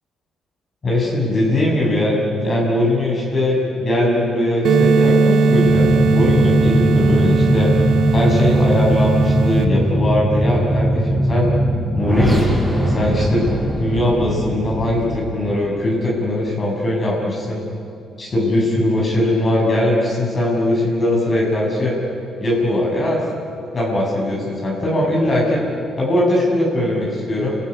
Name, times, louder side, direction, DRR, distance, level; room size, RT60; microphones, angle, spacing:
voice 1, 0.8-7.7 8.1-11.5 12.0-13.4 13.8-17.6 18.2-22.0 22.4-23.2 23.7-25.6 26.0-27.6, left 1 dB, 40° left, -2 dB, 6.7 m, -20 dB
sound 1, 4.6-9.6, right 3 dB, 70° right, 1.6 m, -16 dB
sound 2, 5.6-15.3, right 1 dB, 5° left, 5.8 m, -20 dB
29.0 x 16.0 x 10.0 m, 2.6 s
cardioid pair, 90°, 0 cm